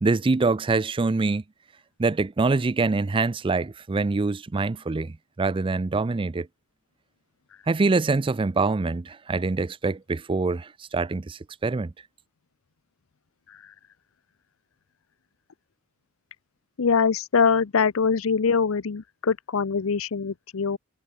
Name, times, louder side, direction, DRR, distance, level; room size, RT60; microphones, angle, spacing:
voice 1, 0.0-1.4 2.0-6.5 7.7-11.9, right 3 dB, 25° right, 0.4 m, -25 dB
voice 2, 16.8-20.8, left 5 dB, 80° left, 0.6 m, -23 dB
head